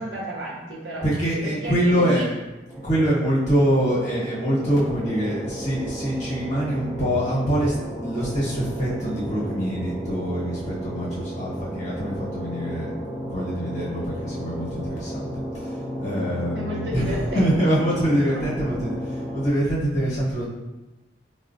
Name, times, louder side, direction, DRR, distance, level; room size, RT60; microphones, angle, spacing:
voice 1, 0.0-1.0 1.4-2.2 16.2-16.3 16.5-17.5 18.3-18.4, right 1 dB, 60° right, -4 dB, 0.6 m, -32 dB
voice 2, 1.0-2.3 2.8-12.9 13.2-15.3 15.5-20.4, equal, 40° left, -7 dB, 1.0 m, -24 dB
sound 1, 2.7-19.5, equal, ahead, 0.4 m, -33 dB
4.3 x 2.2 x 2.5 m, 1.0 s
head